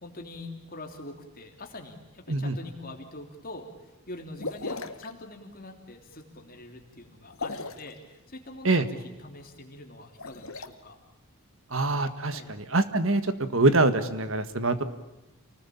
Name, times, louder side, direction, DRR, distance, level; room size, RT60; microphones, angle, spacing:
voice 1, 0.0-3.7 4.1-11.0 12.3-12.5, left 2 dB, 40° left, 3 dB, 3.2 m, -44 dB
sound 1, 4.4-5.1 7.3-7.9 10.1-10.7, left 3 dB, 70° left, 1.7 m, -36 dB
voice 2, 11.7-14.8, right 2 dB, 60° right, 11 dB, 1.8 m, -24 dB
28.5 x 19.5 x 8.6 m, 1.1 s
head